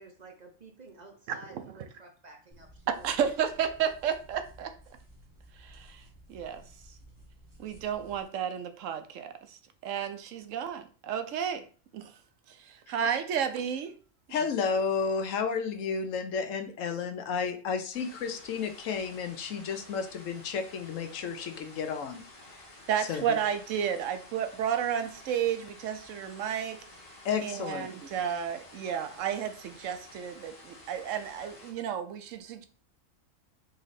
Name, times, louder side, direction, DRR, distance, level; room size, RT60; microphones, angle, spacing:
voice 1, 0.0-3.4, right 3 dB, 45° right, 0.6 m, -51 dB
voice 2, 1.3-1.9 3.0-4.7 5.6-6.0 6.3-6.6 7.6-11.6 11.9-12.1 12.5-13.9 22.9-26.8 27.4-32.7, right 8 dB, 75° right, 1.0 m, -32 dB
sound 1, 2.5-8.2, right 1 dB, 15° right, 1.0 m, -55 dB
voice 3, 14.3-22.2 22.5-22.6 23.0-23.4 27.2-27.9, left 5 dB, 80° left, 1.1 m, -32 dB
sound 2, 17.9-31.7, left 2 dB, 45° left, 1.4 m, -52 dB
4.0 x 3.2 x 4.0 m
omnidirectional pair, 1.3 m